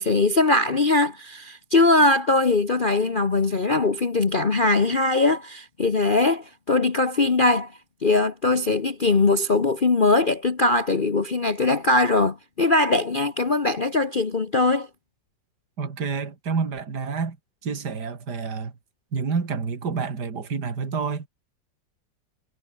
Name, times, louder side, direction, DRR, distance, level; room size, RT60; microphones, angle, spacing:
voice 1, 0.0-7.7 8.0-14.9, left 2 dB, 30° left, 1.3 m, -21 dB
voice 2, 15.8-17.4 17.6-18.7 19.1-21.3, right 5 dB, 60° right, 3.1 m, -28 dB
omnidirectional pair, 2.0 m